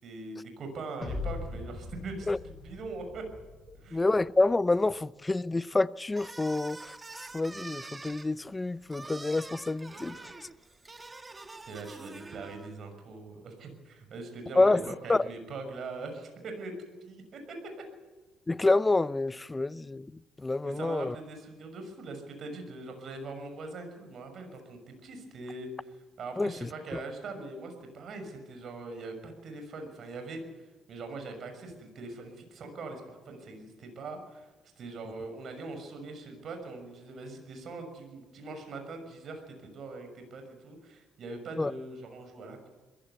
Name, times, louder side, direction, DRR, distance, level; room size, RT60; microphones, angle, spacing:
voice 1, 0.0-3.2 3.7-4.0 9.9-10.3 11.7-17.6 20.6-34.5 34.8-42.7, right 3 dB, 60° right, 6.2 m, -42 dB
sound 1, 1.0-4.3, left 3 dB, 35° left, 7.3 m, -40 dB
voice 2, 3.9-7.0 7.3-10.2 14.6-14.8 15.1-15.2 18.5-20.1 20.4-21.2 26.4-26.5 26.9-27.0 41.6-41.7, left 2 dB, 20° left, 0.7 m, -27 dB
sound 2, 6.1-12.7, right 3 dB, 25° right, 1.8 m, -46 dB
22.0 x 15.0 x 8.2 m
supercardioid pair, 75°, 0 cm